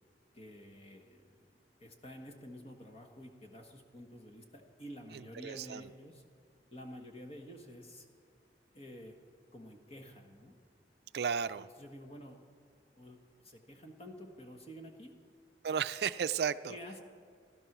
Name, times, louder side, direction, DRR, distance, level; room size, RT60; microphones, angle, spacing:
voice 1, 0.3-1.5 1.8-6.2 6.7-8.1 8.7-9.2 9.5-10.5 11.6-12.4 13.0-13.2 13.4-15.1 16.7-17.0, equal, 35° left, 4 dB, 1.5 m, -50 dB
voice 2, 5.1-5.9 11.1-11.7 15.6-16.8, right 7 dB, 65° right, 13 dB, 0.4 m, -34 dB
16.0 x 13.0 x 6.1 m, 2.1 s
head